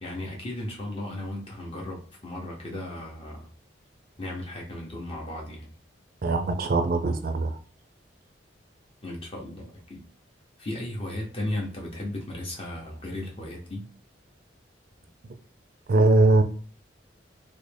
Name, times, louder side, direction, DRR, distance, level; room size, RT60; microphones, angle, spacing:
voice 1, 0.0-3.5 4.2-5.7 9.0-10.0 10.6-13.8, left 1 dB, 30° left, -2 dB, 0.7 m, -35 dB
voice 2, 6.2-7.6 15.9-16.4, right 2 dB, 50° right, 7 dB, 0.4 m, -21 dB
3.8 x 2.1 x 3.3 m, 0.42 s
head